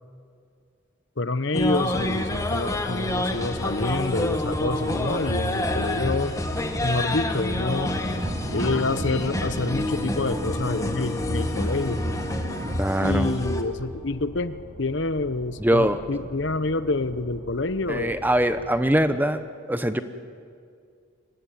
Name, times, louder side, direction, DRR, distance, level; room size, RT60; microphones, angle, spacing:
voice 1, 1.2-6.4 6.8-8.0 8.5-12.1 13.0-18.2, left 2 dB, 60° left, 13 dB, 0.9 m, -27 dB
sound 1, 1.5-13.6, left 1 dB, 15° left, 1.5 m, -28 dB
sound 2, 3.0-19.0, equal, 80° left, 5.3 m, -45 dB
sound 3, 7.8-12.8, right 1 dB, 45° right, 1.4 m, -35 dB
voice 2, 12.8-13.3 15.6-16.0 17.9-20.0, right 1 dB, 10° right, 10 dB, 0.8 m, -22 dB
24.5 x 20.0 x 9.4 m, 2.2 s
head